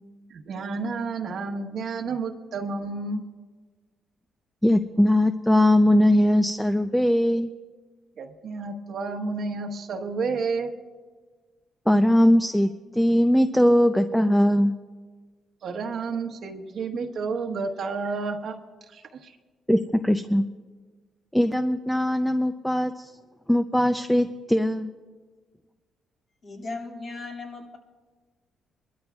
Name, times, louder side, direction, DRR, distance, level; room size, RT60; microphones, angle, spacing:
voice 1, 0.3-3.3 8.2-10.7 15.6-18.5 18.9-19.3, right 4 dB, 65° right, 4 dB, 1.2 m, -31 dB
voice 2, 4.6-7.5 11.9-14.7 19.7-20.4 21.3-23.1 23.5-24.9, left 1 dB, 5° left, 9 dB, 0.5 m, -20 dB
voice 3, 26.4-27.8, left 3 dB, 45° left, -2 dB, 2.5 m, -37 dB
24.5 x 12.5 x 2.4 m, 1.4 s
cardioid pair, 90°, 0 cm